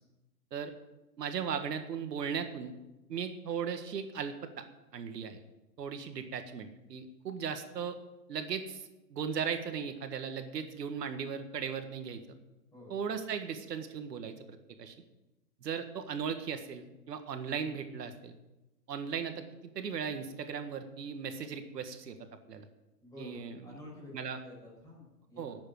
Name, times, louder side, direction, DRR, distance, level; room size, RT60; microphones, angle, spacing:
voice 1, 1.2-2.7 3.1-4.6 4.9-5.4 5.8-8.0 8.3-12.2 12.9-15.0 15.6-18.4 18.9-19.4 19.8-22.2 22.5-22.7 23.2-23.7 24.1-24.4 25.4-25.6, right 7 dB, 80° right, 7 dB, 1.7 m, -37 dB
voice 2, 23.0-24.1 24.4-25.6, left 1 dB, 5° left, -4 dB, 5.5 m, -50 dB
12.0 x 7.9 x 9.3 m, 1.0 s
hypercardioid pair, 155°, 48 cm